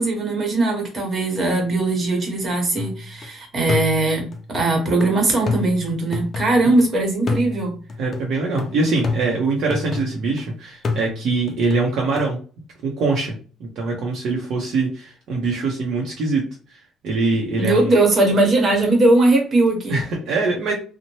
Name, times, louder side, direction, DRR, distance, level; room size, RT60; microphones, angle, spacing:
voice 1, 0.0-4.2 4.5-7.7 17.6-20.0, right 2 dB, 35° right, 1 dB, 1.1 m, -19 dB
sound 1, 2.8-3.3 3.7-6.8 7.3-10.4 10.8-12.3, left 3 dB, 30° left, 0.5 m, -29 dB
voice 2, 8.0-12.4 12.8-13.3 13.6-16.4 16.7-17.9 19.9-20.7, right 3 dB, 60° right, -1 dB, 0.7 m, -23 dB
2.7 x 2.1 x 3.0 m, 0.38 s
cardioid pair, 145°, 0 cm